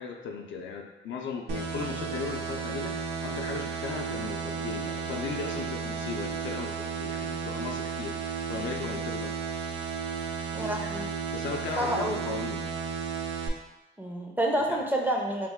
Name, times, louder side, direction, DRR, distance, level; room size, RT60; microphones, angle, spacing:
voice 1, 0.0-9.6 10.2-10.5 11.3-12.7 14.7-14.8, left 5 dB, 70° left, 2 dB, 0.5 m, -37 dB
sound 1, 1.5-13.5, right 6 dB, 80° right, 0.5 m, -33 dB
voice 2, 10.5-11.1 11.8-12.2 14.0-15.5, right 1 dB, 10° right, 0 dB, 0.4 m, -28 dB
3.1 x 2.2 x 3.5 m, 1.0 s
cardioid pair, 90°, 20 cm